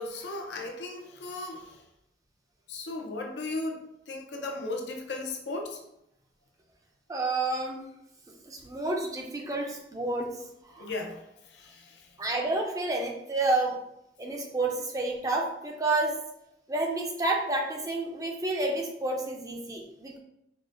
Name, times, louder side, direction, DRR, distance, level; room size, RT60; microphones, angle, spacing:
voice 1, 0.0-1.8 2.7-5.8 10.8-12.2, left 2 dB, 85° left, 2 dB, 0.6 m, -36 dB
voice 2, 7.1-7.8 8.5-10.3 10.8-10.9 12.2-13.7 14.2-16.1 16.7-20.2, right 2 dB, 20° right, 1 dB, 0.4 m, -29 dB
4.8 x 2.2 x 2.5 m, 0.81 s
head